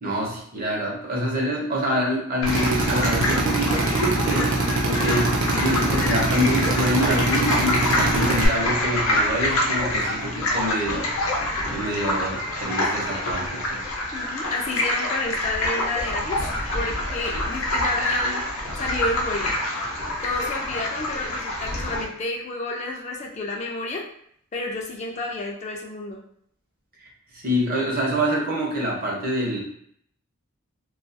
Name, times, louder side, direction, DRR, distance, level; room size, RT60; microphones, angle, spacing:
voice 1, 0.0-5.3 5.6-11.1 11.7-13.8 27.3-29.6, equal, 45° right, -2 dB, 0.7 m, -26 dB
sound 1, 2.4-22.0, left 1 dB, 80° left, 0.6 m, -26 dB
Drill, 2.5-8.5, right 2 dB, 85° right, 0.4 m, -24 dB
voice 2, 5.5-5.9 14.1-16.4 16.7-18.4 18.8-19.5 20.2-24.0 24.5-26.2, left 2 dB, 35° left, 0 dB, 0.3 m, -30 dB
2.3 x 2.3 x 2.5 m, 0.65 s
head